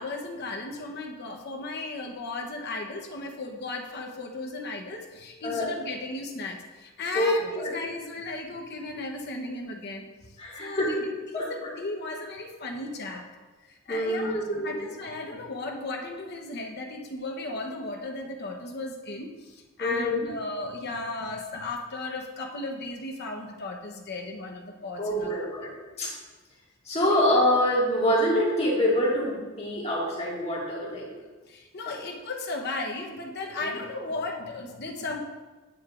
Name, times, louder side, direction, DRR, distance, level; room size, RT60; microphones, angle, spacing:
voice 1, 0.0-10.1 10.6-11.0 11.3-13.3 13.6-25.3 27.1-27.2 31.5-35.2, left 2 dB, 50° left, 2 dB, 0.9 m, -35 dB
voice 2, 7.1-7.7 10.4-10.9 11.3-11.7 13.9-14.9 19.8-20.2 25.0-25.7 26.0-26.1 26.9-31.0 33.6-33.7, left 1 dB, 30° left, -4 dB, 1.8 m, -25 dB
8.7 x 7.7 x 2.5 m, 1.2 s
head